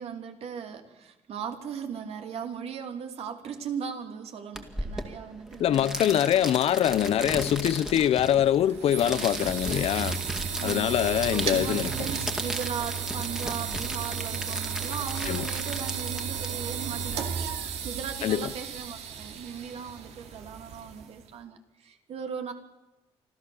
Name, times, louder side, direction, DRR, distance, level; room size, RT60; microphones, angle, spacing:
voice 1, 0.0-6.4 10.6-22.5, right 7 dB, 70° right, 2.8 m, -38 dB
sound 1, 4.6-17.2, equal, 5° right, 2.2 m, -36 dB
voice 2, 5.6-10.2 10.6-11.9 15.3-15.5 18.2-18.5, left 11 dB, 65° left, 0.7 m, -24 dB
sound 2, 8.4-21.2, right 7 dB, 85° right, 2.7 m, -34 dB
25.5 x 14.0 x 7.2 m
cardioid pair, 130°, 11 cm